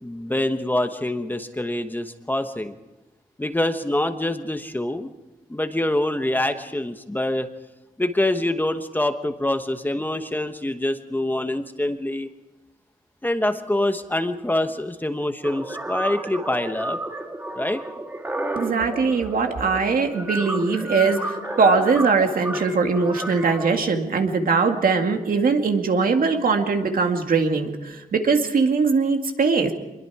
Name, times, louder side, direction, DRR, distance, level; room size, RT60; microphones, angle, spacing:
voice 1, 0.0-2.7 3.4-5.1 5.5-7.5 8.0-12.3 13.2-17.0 17.5-17.8, left 1 dB, 10° left, 7 dB, 1.1 m, -25 dB
sound 1, 15.4-23.7, right 1 dB, 15° right, 1.7 m, -32 dB
voice 2, 18.6-29.7, right 4 dB, 70° right, 4 dB, 2.2 m, -21 dB
25.5 x 22.0 x 4.9 m, 1.1 s
wide cardioid pair, 130°, 15 cm